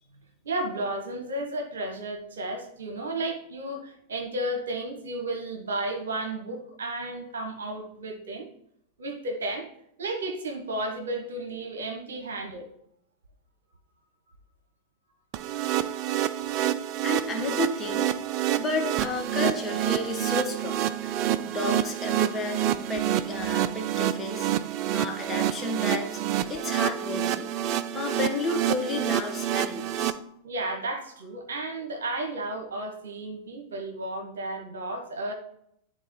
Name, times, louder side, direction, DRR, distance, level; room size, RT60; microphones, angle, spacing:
voice 1, 0.4-8.4 9.0-9.7 10.0-12.7 30.4-35.3, right 2 dB, 65° right, 4 dB, 1.1 m, -33 dB
sound 1, 15.3-30.1, right 11 dB, 40° right, 0.4 m, -28 dB
voice 2, 17.0-18.1 18.5-21.2 21.5-22.6 22.9-24.5 24.9-26.2 26.5-27.5 27.9-30.1, left 3 dB, 15° left, 1 dB, 1.4 m, -32 dB
11.0 x 3.9 x 3.1 m, 0.73 s
figure-of-eight pair, 90°, 0 cm